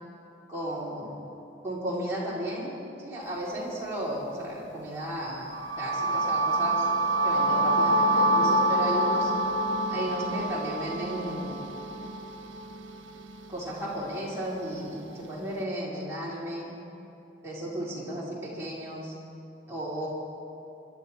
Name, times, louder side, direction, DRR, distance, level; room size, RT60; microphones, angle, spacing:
voice 1, 0.5-1.2 1.6-2.7 3.0-6.9 7.2-9.3 9.9-11.6 13.5-16.7 17.4-19.2 19.7-20.1, right 1 dB, 15° right, -8 dB, 4.1 m, -34 dB
sound 1, 5.5-13.4, right 1 dB, 80° right, 1.0 m, -26 dB
25.0 x 12.0 x 4.4 m, 2.9 s
head